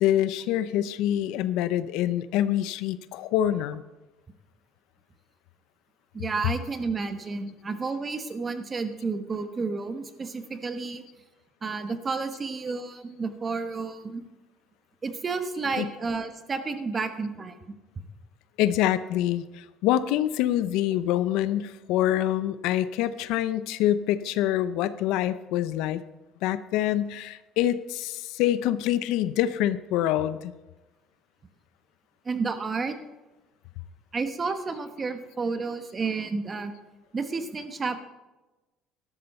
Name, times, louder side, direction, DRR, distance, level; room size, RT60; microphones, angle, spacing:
voice 1, 0.0-3.8 15.8-15.9 18.6-26.0 26.4-30.5, left 12 dB, 80° left, 15 dB, 0.6 m, -26 dB
voice 2, 6.1-11.0 11.6-14.2 15.0-17.5 32.2-32.9 34.1-36.7 37.1-38.0, right 4 dB, 25° right, 9 dB, 1.2 m, -31 dB
12.5 x 12.0 x 4.3 m, 1.1 s
cardioid pair, 115°, 0 cm